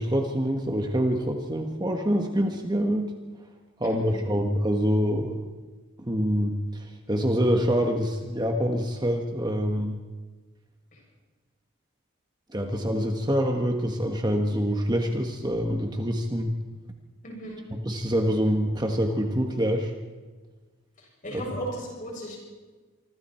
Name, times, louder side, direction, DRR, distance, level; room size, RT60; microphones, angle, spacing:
voice 1, 0.0-3.1 3.8-5.4 6.0-10.0 12.5-16.5 17.7-19.9 21.3-21.4, equal, 20° right, 3 dB, 1.5 m, -26 dB
voice 2, 3.8-4.2 10.9-11.0 17.2-17.6 21.2-22.4, right 1 dB, 40° left, -1 dB, 7.0 m, -36 dB
26.0 x 25.5 x 4.5 m, 1.3 s
head